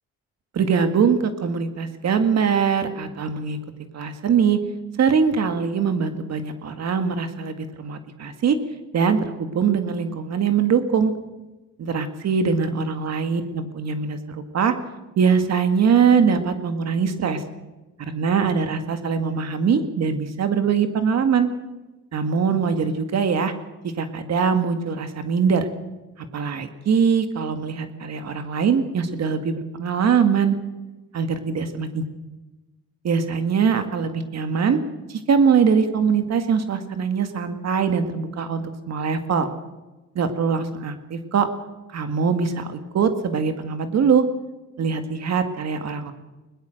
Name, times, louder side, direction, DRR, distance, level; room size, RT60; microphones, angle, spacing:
voice 1, 0.5-3.6 3.9-4.6 5.0-8.6 8.9-11.1 11.8-14.7 15.2-17.4 18.0-21.5 22.1-23.5 23.8-25.7 26.2-30.6 31.1-32.0 33.0-34.8 35.1-39.5 40.2-41.5 41.9-44.3 44.8-46.1, right 6 dB, 60° right, 8 dB, 2.0 m, -22 dB
21.0 x 19.0 x 6.6 m, 1.1 s
cardioid pair, 90°, 30 cm